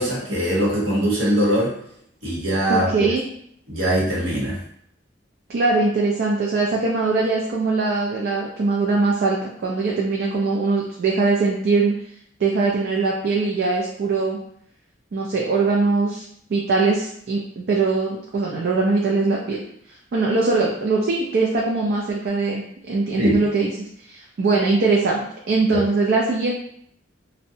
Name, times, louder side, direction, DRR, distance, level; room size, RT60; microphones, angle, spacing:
voice 1, 0.0-1.7 2.2-3.1 3.7-4.6 23.2-23.4 25.7-25.8, equal, 85° right, -5 dB, 1.1 m, -21 dB
voice 2, 2.7-3.3 5.5-11.9 12.4-14.4 15.1-16.2 16.5-19.6 19.9-26.5, right 3 dB, 55° right, -2 dB, 0.3 m, -21 dB
2.5 x 2.1 x 2.6 m, 0.70 s
head